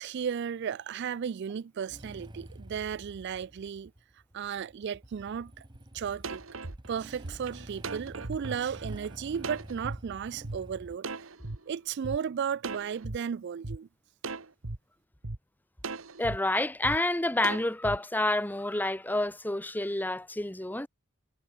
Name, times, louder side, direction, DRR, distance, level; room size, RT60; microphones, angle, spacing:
voice 1, 0.0-3.9 4.3-5.6 5.9-6.4 6.9-11.1 11.7-13.9, right 7 dB, 55° right, 0.4 m, -34 dB
Motorcycle / Engine starting, 1.9-11.0, right 1 dB, 25° right, 1.6 m, -49 dB
sound 1, 5.7-5.8 6.2-10.0 10.4-10.6 11.0-12.2 12.6-13.2 13.6-13.8 14.2-14.8 15.2-15.4 15.8-16.4 16.8-17.0 17.4-18.0, right 3 dB, 85° right, 1.5 m, -38 dB
voice 2, 16.2-20.9, left 1 dB, 10° left, 0.9 m, -29 dB
head